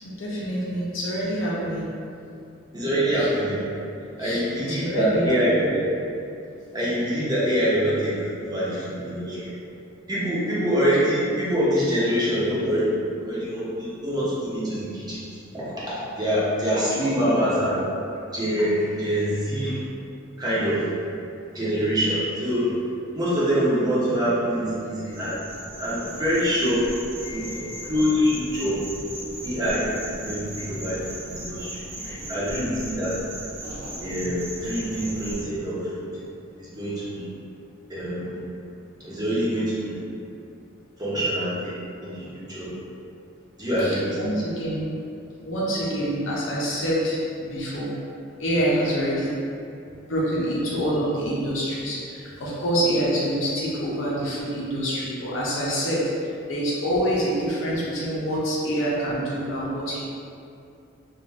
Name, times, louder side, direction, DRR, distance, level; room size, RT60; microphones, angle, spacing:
voice 1, 0.0-1.9 3.1-3.3 4.2-5.8 27.2-27.8 34.2-34.3 43.8-44.9 45.4-47.9 48.4-49.3 50.1-56.0 56.5-60.0, equal, 70° left, -6 dB, 0.5 m, -26 dB
voice 2, 2.7-3.8 4.2-5.8 6.7-9.6 10.1-12.9 13.2-15.3 15.5-17.8 18.3-19.8 20.4-20.9 21.5-22.7 23.1-25.4 25.8-26.9 27.3-28.8 29.4-33.2 34.0-36.1 36.6-37.2 37.9-38.4 39.0-40.0 41.0-41.7 42.0-42.7 43.6-44.3 45.8-45.9, equal, 20° right, -9 dB, 0.7 m, -25 dB
sound 1, 25.1-35.4, right 1 dB, 80° right, 0.7 m, -37 dB
2.5 x 2.2 x 3.1 m, 2.5 s
head